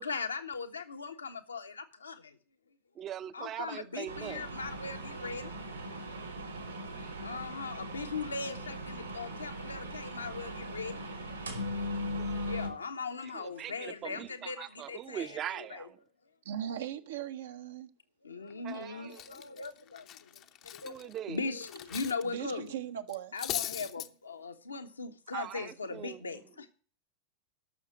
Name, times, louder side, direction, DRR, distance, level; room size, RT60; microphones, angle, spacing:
voice 1, 0.0-2.4 3.3-5.5 7.2-11.0 12.3-15.8 18.2-21.0 21.3-22.7 23.3-26.7, left 4 dB, 75° left, 1.3 m, -39 dB
voice 2, 2.9-4.5 12.0-12.6 13.2-16.0 18.6-19.4 20.8-21.4 25.3-26.2, right 10 dB, 30° right, 0.8 m, -42 dB
sound 1, 4.1-12.7, equal, 80° right, 3.0 m, -39 dB
voice 3, 16.4-17.9 22.2-23.3, right 10 dB, 60° right, 0.9 m, -38 dB
Cutlery silverware, 18.5-18.8 19.1-22.2 22.5-22.7 23.1-24.1, left 12 dB, 35° left, 0.8 m, -40 dB
13.0 x 6.5 x 9.0 m
figure-of-eight pair, 90°, 0 cm